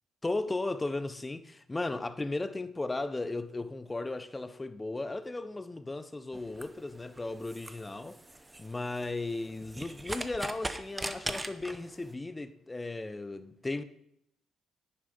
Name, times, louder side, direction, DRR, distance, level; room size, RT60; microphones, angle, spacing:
voice 1, 0.2-8.2 8.6-13.8, left 2 dB, 20° left, 0.9 m, -36 dB
sound 1, 6.3-12.1, right 1 dB, 15° right, 1.0 m, -41 dB
10.5 x 10.0 x 5.5 m
cardioid pair, 90°, 0 cm